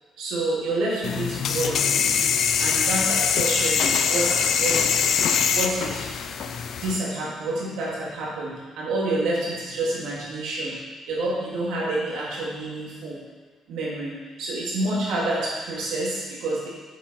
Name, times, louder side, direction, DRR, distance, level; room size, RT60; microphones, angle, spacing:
voice 1, 0.2-2.1 2.6-5.2 5.5-6.1 6.4-10.8 11.1-13.2 13.7-16.7, right 2 dB, 85° right, -5 dB, 2.8 m, -28 dB
sound 1, 1.0-7.0, left 7 dB, 65° left, 0.6 m, -23 dB
7.5 x 7.3 x 4.6 m, 1.4 s
cardioid pair, 115°, 0 cm